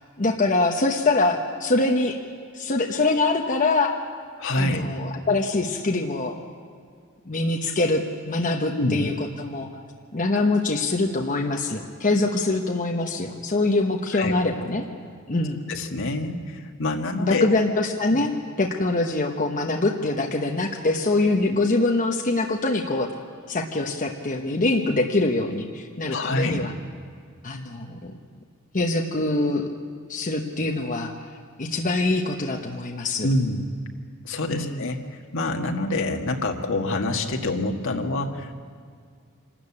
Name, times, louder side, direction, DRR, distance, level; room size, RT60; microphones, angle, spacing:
voice 1, 0.2-2.2 2.5-3.9 4.5-6.3 7.3-9.7 10.1-14.8 15.3-15.6 17.2-23.1 23.5-26.7 27.4-28.1 28.7-29.7 30.1-31.1 31.6-33.3 34.5-34.9, left 2 dB, 40° left, 1 dB, 1.1 m, -24 dB
voice 2, 4.4-4.8 8.7-9.1 14.1-14.3 15.7-17.5 18.1-18.2 26.1-26.6 33.2-33.7 34.2-35.0 35.3-38.5, left 2 dB, 65° left, 3 dB, 1.7 m, -26 dB
25.5 x 13.5 x 8.6 m, 2.1 s
head